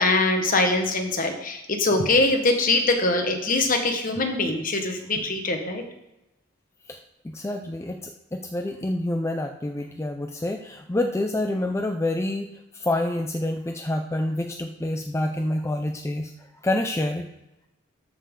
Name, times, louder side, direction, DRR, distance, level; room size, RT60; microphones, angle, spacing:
voice 1, 0.0-5.8, left 2 dB, 45° left, 5 dB, 1.3 m, -23 dB
voice 2, 7.2-17.3, left 1 dB, 15° left, 5 dB, 0.4 m, -28 dB
13.0 x 5.3 x 3.7 m, 0.93 s
head